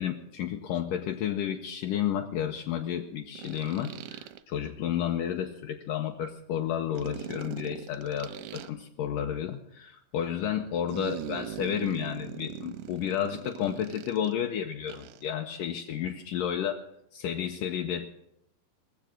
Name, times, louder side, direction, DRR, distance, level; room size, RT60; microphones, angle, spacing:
voice 1, 0.0-16.8 17.1-18.1, left 9 dB, 75° left, 3 dB, 2.1 m, -31 dB
sound 1, 0.8-0.9 3.4-4.4 6.9-8.7 10.9-14.3 14.9-15.2, right 12 dB, 80° right, 1.8 m, -40 dB
19.5 x 7.2 x 7.6 m, 0.78 s
omnidirectional pair, 4.2 m